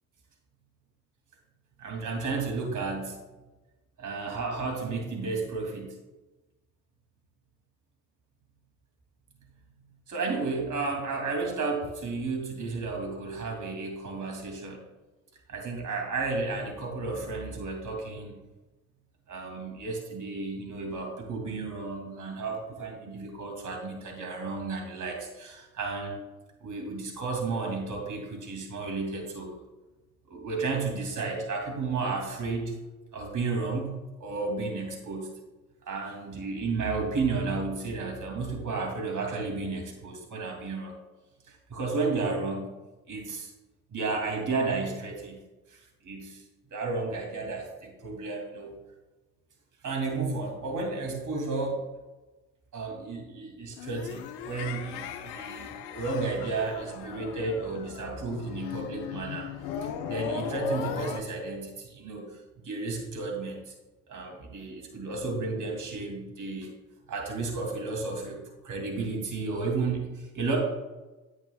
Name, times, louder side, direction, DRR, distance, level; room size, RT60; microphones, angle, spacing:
voice 1, 1.8-3.2 4.0-5.9 10.1-14.8 15.5-18.4 19.3-26.2 26.6-29.6 30.3-32.8 33.1-35.3 35.8-40.9 41.5-42.7 43.1-43.5 43.9-45.4 45.7-46.4 46.7-48.7 49.8-51.8 52.7-59.5 59.8-62.3 62.6-63.7 64.1-66.7 67.1-70.6, right 3 dB, 45° right, 0 dB, 2.7 m, -32 dB
sound 1, 53.7-61.2, left 7 dB, 65° left, 0.9 m, -37 dB
10.5 x 8.1 x 2.3 m, 1.1 s
hypercardioid pair, 55°, 44 cm